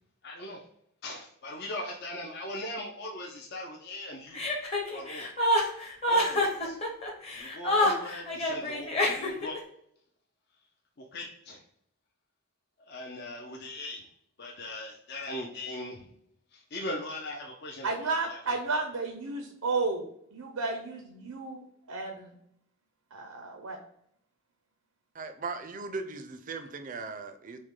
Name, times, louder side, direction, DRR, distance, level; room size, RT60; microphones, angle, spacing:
voice 1, 0.2-0.7 1.0-4.4 4.9-5.3 6.1-6.8 7.4-9.6 11.0-11.6 12.9-14.1 14.4-16.1 16.5-18.4, left 1 dB, 50° left, 0 dB, 0.6 m, -39 dB
Chuckle chortle, 4.3-9.6, left 1 dB, 30° left, 0.9 m, -27 dB
voice 2, 17.8-22.3 23.1-23.8, right 3 dB, 85° right, 3 dB, 0.7 m, -33 dB
voice 3, 25.1-27.6, right 4 dB, 35° right, 8 dB, 0.5 m, -38 dB
6.2 x 2.2 x 3.7 m, 0.72 s
head